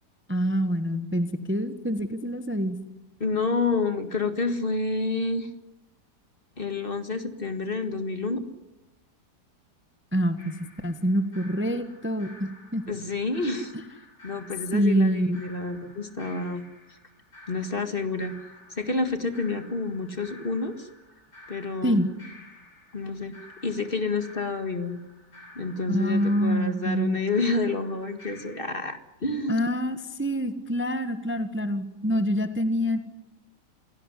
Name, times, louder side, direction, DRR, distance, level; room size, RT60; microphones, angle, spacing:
voice 1, 0.3-2.8 10.1-12.8 14.7-15.4 21.8-22.1 25.9-27.2 29.5-33.0, equal, 10° right, 9 dB, 1.3 m, -26 dB
voice 2, 3.2-5.5 6.6-8.4 12.9-13.7 14.2-16.7 17.5-18.3 18.7-20.9 21.5-22.1 22.9-23.3 23.6-25.0 25.6-29.6, left 3 dB, 35° left, 8 dB, 2.0 m, -29 dB
sound 1, 10.4-28.7, left 1 dB, 85° left, 5.3 m, -51 dB
28.0 x 17.5 x 10.0 m, 0.94 s
omnidirectional pair, 1.8 m